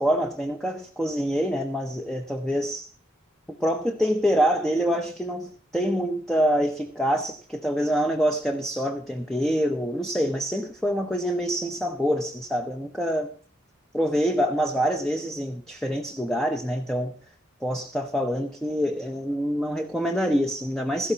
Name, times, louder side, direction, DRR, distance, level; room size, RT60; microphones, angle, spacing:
voice 1, 0.0-2.9 3.6-13.3 13.9-17.1 17.6-21.1, equal, ahead, 0.7 m, -26 dB
16.5 x 13.0 x 2.8 m
head